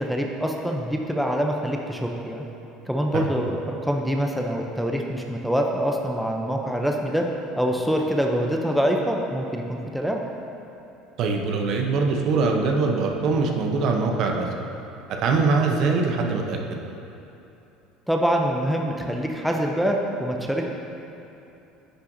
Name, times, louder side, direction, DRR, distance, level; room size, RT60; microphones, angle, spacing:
voice 1, 0.0-2.4 2.9-7.2 7.6-10.2 18.1-20.7, equal, ahead, 1 dB, 0.5 m, -25 dB
voice 2, 11.2-14.5 15.2-16.8, right 4 dB, 55° right, 2 dB, 0.7 m, -23 dB
9.8 x 5.7 x 2.7 m, 2.8 s
supercardioid pair, 110°, 0 cm